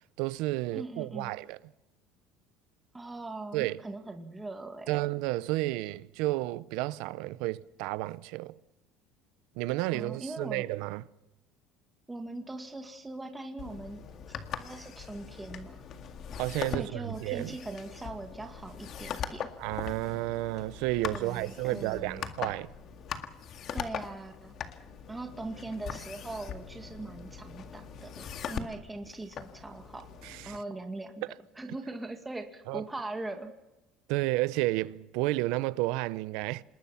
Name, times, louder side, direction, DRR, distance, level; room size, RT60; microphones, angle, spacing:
voice 1, 0.2-1.6 3.5-3.8 4.9-8.6 9.6-11.0 16.4-17.6 19.6-22.7 30.2-30.6 32.7-32.8 34.1-36.6, right 18 dB, 75° right, 0.8 m, -31 dB
voice 2, 0.7-1.3 2.9-4.9 9.9-10.7 12.1-14.0 14.6-15.8 16.7-19.5 21.1-22.3 23.7-24.5 25.1-30.1 30.4-31.2 31.6-33.5, right 2 dB, 10° right, 2.2 m, -40 dB
sound 1, 13.6-30.6, left 8 dB, 45° left, 1.9 m, -41 dB
27.0 x 20.5 x 5.8 m
supercardioid pair, 120°, 0 cm